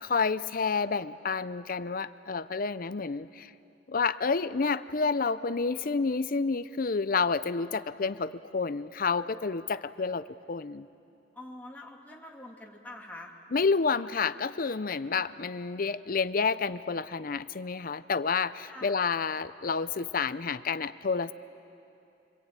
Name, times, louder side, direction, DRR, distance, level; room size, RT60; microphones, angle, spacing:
voice 1, 0.0-3.5 3.9-10.9 13.5-21.3, left 4 dB, 50° left, 15 dB, 0.6 m, -29 dB
voice 2, 11.3-13.3 18.6-19.0, left 1 dB, 10° left, -2 dB, 2.7 m, -45 dB
25.5 x 25.0 x 9.0 m, 2.7 s
head